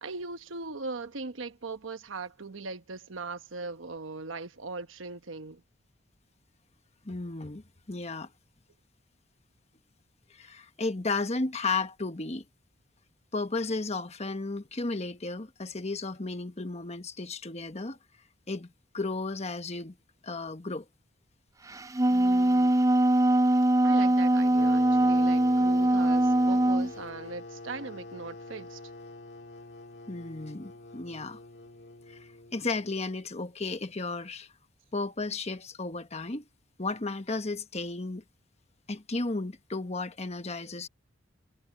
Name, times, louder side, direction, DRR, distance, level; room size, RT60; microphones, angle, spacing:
voice 1, 0.0-5.6 22.1-22.9 23.8-28.8, right 3 dB, 85° right, 1.1 m, -39 dB
voice 2, 7.0-8.3 10.3-12.4 13.3-18.0 18.5-18.7 18.9-20.0 20.2-20.8 30.1-31.4 32.1-34.5 34.9-36.4 36.8-38.2 38.9-40.9, left 3 dB, 35° left, 1.2 m, -34 dB
Wind instrument woodwind instrument, 21.7-26.9, right 1 dB, 15° right, 0.5 m, -22 dB
sound 1, 24.6-33.0, left 2 dB, 60° left, 2.3 m, -45 dB
head